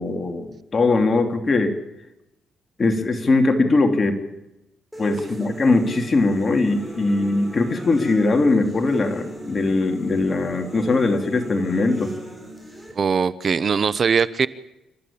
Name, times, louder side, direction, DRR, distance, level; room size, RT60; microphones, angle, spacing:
voice 1, 0.0-1.7 2.8-4.2 5.0-12.1, left 3 dB, 35° left, 5 dB, 2.9 m, -20 dB
sound 1, 4.9-12.9, right 1 dB, 5° right, 7.4 m, -37 dB
voice 2, 13.0-14.5, right 6 dB, 45° right, 17 dB, 0.9 m, -20 dB
28.5 x 14.0 x 8.7 m, 0.94 s
cardioid pair, 90°, 0 cm